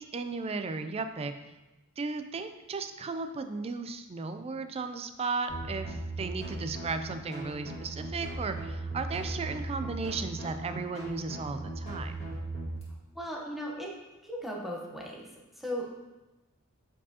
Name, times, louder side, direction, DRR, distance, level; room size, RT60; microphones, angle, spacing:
voice 1, 0.0-1.3 2.0-12.1, right 4 dB, 25° right, 8 dB, 0.3 m, -35 dB
sound 1, 5.5-12.8, right 2 dB, 30° left, 1.9 m, -38 dB
voice 2, 13.1-13.9 14.2-15.3 15.5-15.9, equal, ahead, -2 dB, 0.9 m, -37 dB
7.2 x 4.6 x 2.8 m, 1.1 s
head